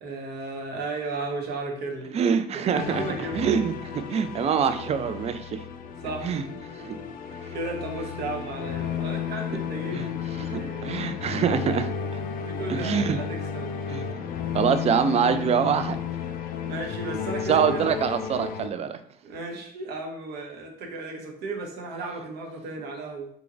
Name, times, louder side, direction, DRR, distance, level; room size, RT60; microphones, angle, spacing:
voice 1, 0.0-3.5 6.0-6.4 7.2-10.9 12.2-13.7 16.7-17.9 19.2-23.3, right 3 dB, 75° right, 0 dB, 0.9 m, -35 dB
voice 2, 2.1-3.0 3.3-5.6 6.2-6.4 6.8-7.0 9.9-10.0 10.4-11.9 12.7-13.2 13.9-14.2 14.5-16.0 17.5-19.0, right 7 dB, 40° right, 10 dB, 0.4 m, -25 dB
sound 1, 2.8-18.7, left 7 dB, 55° left, 0.4 m, -33 dB
3.5 x 3.0 x 2.5 m, 0.64 s
cardioid pair, 110°, 17 cm